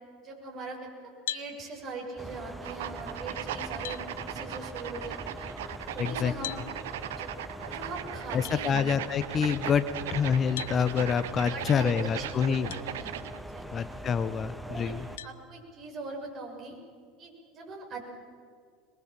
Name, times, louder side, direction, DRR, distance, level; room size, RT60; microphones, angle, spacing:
voice 1, 0.2-5.5 5.8-6.6 7.2-7.3 7.6-8.9 11.5-13.1 13.5-13.9 14.6-14.9 15.2-16.8 17.2-18.1, right 3 dB, 45° right, 1 dB, 6.3 m, -41 dB
sound 1, 1.3-1.5 3.2-3.3 3.8-4.0 6.4-6.7 8.4-8.6 10.6-10.8 12.7-12.8 13.5-13.6 15.2-15.4, left 12 dB, 70° left, 0.7 m, -37 dB
sound 2, 2.2-15.2, equal, 5° right, 1.0 m, -42 dB
sound 3, 2.6-13.4, right 12 dB, 70° right, 0.7 m, -39 dB
voice 2, 6.0-6.3 8.3-9.8 10.1-12.7 13.7-15.0, left 7 dB, 35° left, 12 dB, 0.9 m, -27 dB
22.5 x 22.0 x 7.4 m, 2.2 s
hypercardioid pair, 80°, 0 cm